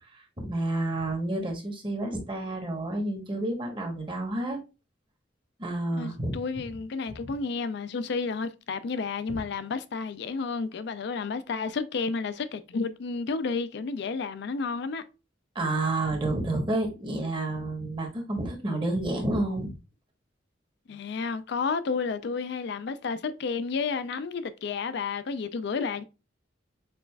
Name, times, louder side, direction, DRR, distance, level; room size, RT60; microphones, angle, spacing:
voice 1, 0.4-4.6 5.6-6.3 7.2-7.3 9.3-9.4 15.5-19.7, right 2 dB, 25° right, 1.0 m, -30 dB
voice 2, 6.0-15.0 20.9-26.0, left 4 dB, 65° left, 0.4 m, -31 dB
6.0 x 2.4 x 2.2 m
head